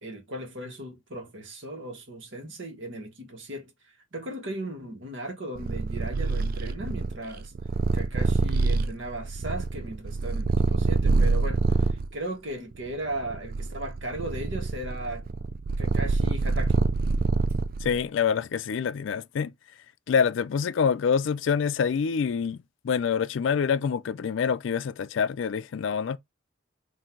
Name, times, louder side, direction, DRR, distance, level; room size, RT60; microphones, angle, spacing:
voice 1, 0.0-3.7 4.1-7.5 7.9-15.3 15.8-16.8, right 1 dB, 65° right, 1.3 m, -37 dB
Purr, 5.5-12.1 12.7-18.0, right 3 dB, 45° right, 0.4 m, -26 dB
voice 2, 17.8-19.5 20.1-26.2, left 6 dB, 65° left, 0.3 m, -26 dB
3.8 x 2.7 x 4.3 m
head